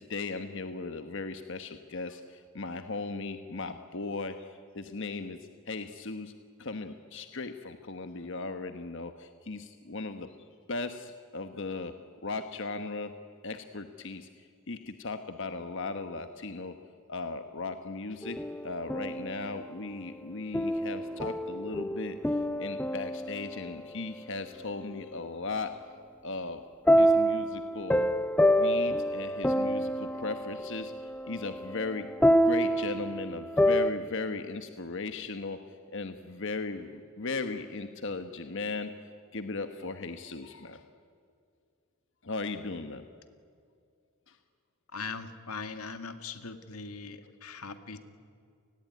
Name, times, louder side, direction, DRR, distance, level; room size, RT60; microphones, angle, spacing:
voice 1, 0.0-5.4 5.7-6.3 6.6-10.3 10.7-11.9 12.2-13.1 13.4-14.3 14.7-16.7 17.1-18.4 18.6-22.2 22.6-25.8 26.2-26.6 27.0-28.1 28.6-30.9 31.3-32.1 32.4-38.9 39.3-40.8 42.2-43.0 44.3-44.4, left 3 dB, 60° left, 8 dB, 1.2 m, -37 dB
sound 1, 18.2-19.5 20.5-23.8 26.9-33.9, equal, 5° left, 0.6 m, -27 dB
voice 2, 44.9-48.0, left 4 dB, 85° left, 8 dB, 2.1 m, -40 dB
30.0 x 20.0 x 9.5 m, 2.3 s
head